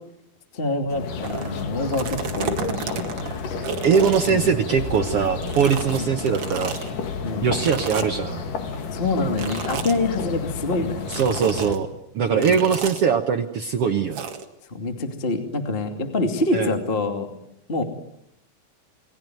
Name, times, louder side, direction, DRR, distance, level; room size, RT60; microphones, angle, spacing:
voice 1, 0.5-2.6 4.2-4.4 5.9-6.1 7.2-7.5 8.9-11.1 12.3-12.6 14.7-17.3 17.7-17.8, left 2 dB, 20° left, 6 dB, 2.2 m, -26 dB
sound 1, 0.9-11.8, left 5 dB, 60° left, 3.8 m, -31 dB
sound 2, 1.2-1.5 1.8-5.2 5.4-6.9 7.6-8.3 9.3-10.0 11.1-11.8 12.4-13.0 14.1-14.4, right 6 dB, 45° right, 2.4 m, -32 dB
voice 2, 3.8-6.7 7.4-8.4 11.1-11.9 12.1-14.3 16.5-16.7, right 6 dB, 70° right, 7 dB, 1.4 m, -21 dB
29.0 x 21.0 x 9.4 m, 0.79 s
omnidirectional pair, 4.3 m